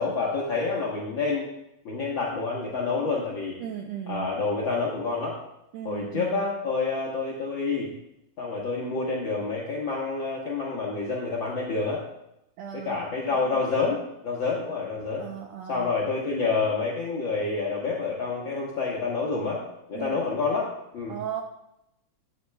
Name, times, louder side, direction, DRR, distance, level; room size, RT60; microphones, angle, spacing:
voice 1, 0.0-1.5 1.8-3.6 4.1-5.4 5.8-7.9 8.4-12.0 12.7-15.3 15.7-19.6 19.9-21.2, left 4 dB, 65° left, -4 dB, 1.2 m, -28 dB
voice 2, 3.6-4.3 5.7-6.4 12.6-13.0 13.3-13.6 15.2-15.9 19.9-20.2 21.1-21.4, right 9 dB, 80° right, 2 dB, 1.5 m, -36 dB
11.5 x 8.5 x 2.2 m, 0.85 s
omnidirectional pair, 3.8 m